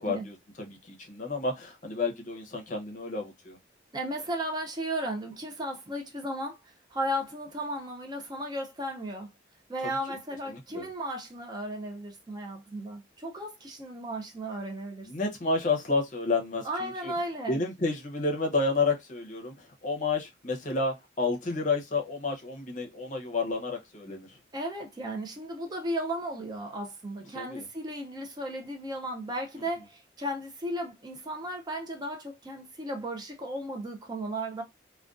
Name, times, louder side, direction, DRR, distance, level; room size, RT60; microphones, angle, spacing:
voice 1, 0.0-3.6 9.8-10.2 10.4-10.9 15.0-17.1 17.5-24.4 27.3-27.7 29.6-29.7, left 3 dB, 40° left, 0.6 m, -31 dB
voice 2, 3.9-9.3 9.7-15.1 16.6-17.6 24.5-34.6, right 1 dB, 20° right, 0.4 m, -35 dB
2.4 x 2.2 x 2.3 m
head